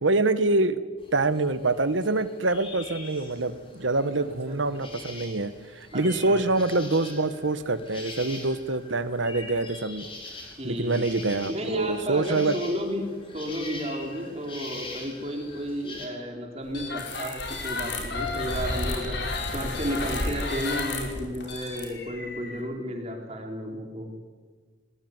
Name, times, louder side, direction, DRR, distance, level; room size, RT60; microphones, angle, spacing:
voice 1, 0.0-0.8 1.1-10.1 10.6-12.6, right 2 dB, 90° right, 12 dB, 1.4 m, -25 dB
sound 1, 1.0-16.1, left 2 dB, 30° left, 4.6 m, -43 dB
voice 2, 4.1-4.9 5.9-6.4 10.6-11.1 11.5-13.0 13.3-19.2 19.5-24.1, equal, 35° right, 2 dB, 4.2 m, -33 dB
sound 2, 16.7-22.6, left 2 dB, 70° left, 4.9 m, -32 dB
20.5 x 19.5 x 9.7 m, 1.5 s
head